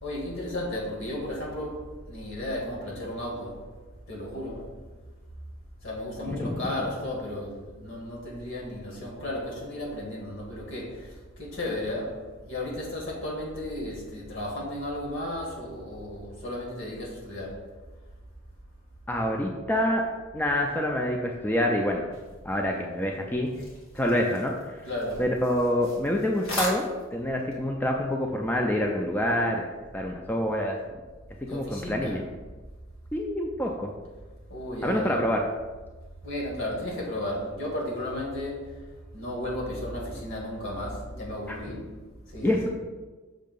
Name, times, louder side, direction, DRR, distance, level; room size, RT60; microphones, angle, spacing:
voice 1, 0.0-3.6 4.1-4.7 5.8-17.5 24.8-25.2 31.4-32.2 34.5-35.2 36.2-38.7 39.1-41.9 42.3-42.7, left 1 dB, 65° left, -3 dB, 1.8 m, -34 dB
voice 2, 6.3-6.6 19.1-20.0 20.3-22.1 22.4-23.5 23.9-24.5 25.2-29.7 29.9-30.8 31.5-32.2 33.1-33.9 34.8-35.4 41.5-41.6 42.4-42.7, left 1 dB, 10° left, 0 dB, 0.4 m, -26 dB
sound 1, 22.1-27.6, left 1 dB, 90° left, 1.8 m, -39 dB
6.4 x 2.8 x 5.2 m, 1.3 s
head